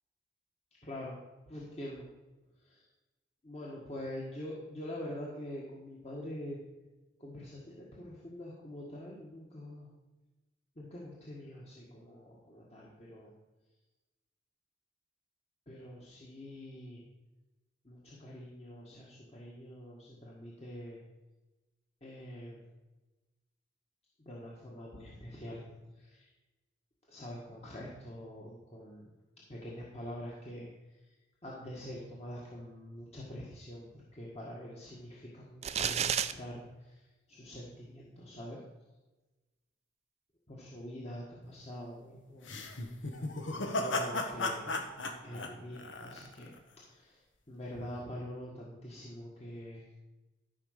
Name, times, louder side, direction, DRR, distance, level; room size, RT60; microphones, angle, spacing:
voice 1, 0.8-1.2 1.5-2.1 2.6-2.9 3.4-6.6 7.2-9.9 10.8-13.3 15.7-17.0 17.8-21.0 22.0-22.6 24.2-25.6 26.0-26.3 27.1-29.1 29.5-30.7 31.4-36.9 37.3-38.6 40.5-42.5 42.9-43.2 43.5-44.9 45.2-46.5 46.9-47.2 47.5-49.9, left 1 dB, 35° left, -4 dB, 1.6 m, -45 dB
sound 1, 35.6-36.3, right 8 dB, 35° right, 0.4 m, -30 dB
sound 2, 42.4-46.6, left 2 dB, 85° left, 1.4 m, -35 dB
13.0 x 5.4 x 6.5 m, 1.1 s
head